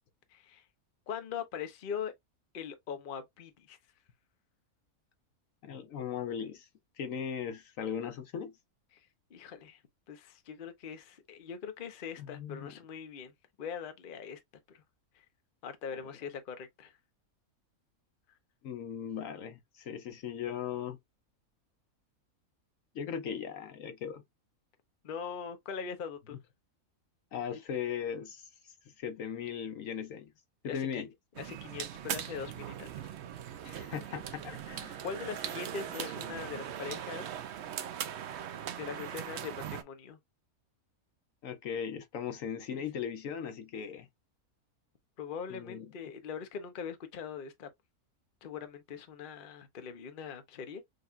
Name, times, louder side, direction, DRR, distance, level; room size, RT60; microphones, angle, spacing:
voice 1, 0.3-0.6 1.1-2.1 2.5-3.8 9.3-9.8 10.1-13.3 13.6-14.4 14.7-14.8 15.6-16.9 25.0-26.4 30.6-31.0 31.4-32.9 35.0-37.3 38.8-40.2 42.7-42.8 45.2-47.7 48.4-50.8, left 7 dB, 45° left, 0.8 m, -41 dB
voice 2, 5.6-6.7 7.0-8.5 12.2-12.7 18.6-21.0 22.9-24.2 27.3-28.5 29.0-30.3 30.6-31.1 33.6-35.0 41.4-44.1 45.5-45.9, left 8 dB, 65° left, 1.1 m, -38 dB
sound 1, 31.3-39.8, right 10 dB, 60° right, 0.7 m, -40 dB
6.5 x 2.3 x 2.4 m
omnidirectional pair, 1.5 m